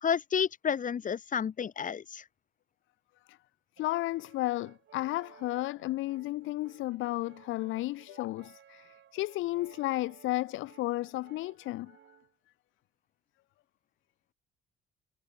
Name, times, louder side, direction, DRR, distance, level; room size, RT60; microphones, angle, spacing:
voice 1, 0.0-2.2, left 7 dB, 40° left, 0.9 m, -30 dB
voice 2, 3.8-11.9, left 17 dB, 80° left, 0.4 m, -33 dB
Brass instrument, 3.8-12.3, right 10 dB, 65° right, 5.5 m, -58 dB
cardioid pair, 90°, 20 cm